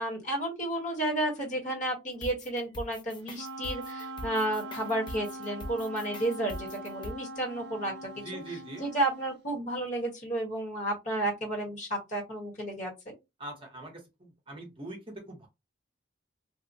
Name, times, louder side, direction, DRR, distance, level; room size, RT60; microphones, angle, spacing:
voice 1, 0.0-8.1 8.8-13.1, right 1 dB, 40° left, -1 dB, 1.2 m, -32 dB
sound 1, 2.2-7.1, left 1 dB, 25° left, 0.4 m, -43 dB
Wind instrument woodwind instrument, 3.3-9.4, right 2 dB, 60° right, 0.4 m, -42 dB
voice 2, 8.2-8.8 13.4-15.5, right 2 dB, 30° right, 1 dB, 0.8 m, -42 dB
2.8 x 2.1 x 2.6 m, 0.23 s
head